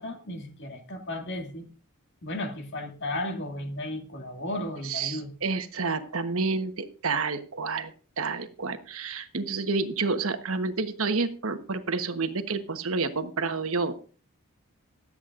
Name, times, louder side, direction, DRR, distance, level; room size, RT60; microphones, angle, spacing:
voice 1, 0.0-1.7 2.2-5.3, left 1 dB, 55° left, 4 dB, 2.1 m, -34 dB
voice 2, 4.8-13.9, right 4 dB, 70° right, 8 dB, 1.2 m, -29 dB
25.0 x 8.4 x 2.5 m, 0.38 s
head